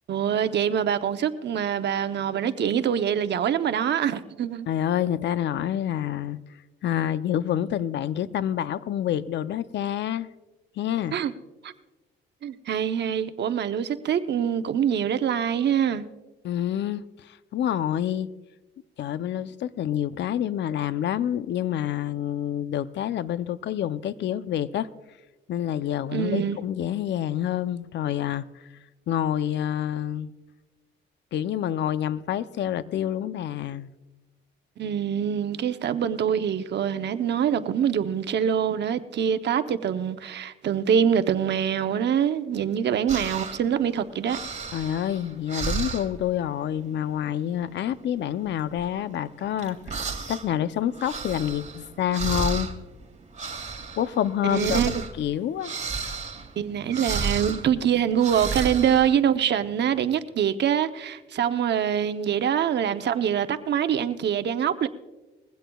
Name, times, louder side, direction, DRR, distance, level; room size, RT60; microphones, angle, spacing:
voice 1, 0.1-4.7 11.1-11.3 11.6-11.7 12.4-16.1 26.1-26.6 34.8-44.4 54.4-55.0 56.6-64.9, right 8 dB, 60° right, 0.8 m, -24 dB
voice 2, 4.7-6.4 6.8-10.3 10.8-11.2 16.4-18.3 19.0-24.9 25.5-28.4 29.1-30.3 31.3-33.9 44.7-52.7 54.0-54.8 55.2-55.7, left 10 dB, 65° left, 0.6 m, -27 dB
sound 1, 43.1-43.7 44.1-46.3 46.6-46.9 47.2-47.6 48.0-50.5 50.8-59.2, right 4 dB, 35° right, 2.3 m, -33 dB
21.0 x 15.5 x 2.3 m
cardioid pair, 90°, 20 cm